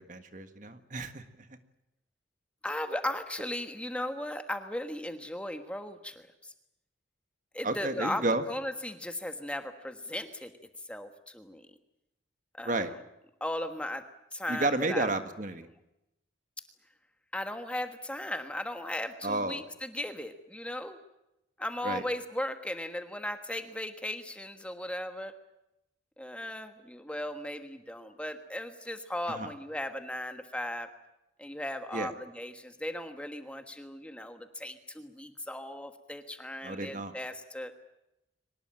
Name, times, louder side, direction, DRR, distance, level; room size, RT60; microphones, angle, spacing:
voice 1, 0.0-1.6 7.6-8.4 12.6-12.9 14.5-15.7 19.2-19.6 21.8-22.0 29.3-29.5 31.9-32.1 36.6-37.1, right 2 dB, 40° right, 9 dB, 1.6 m, -32 dB
voice 2, 2.6-6.5 7.5-10.5 10.9-11.7 12.5-12.9 13.4-14.0 14.3-15.1 17.3-21.0 21.6-25.3 26.2-30.9 31.4-37.7, left 1 dB, 5° left, 7 dB, 1.3 m, -37 dB
24.0 x 19.5 x 9.0 m, 0.88 s
head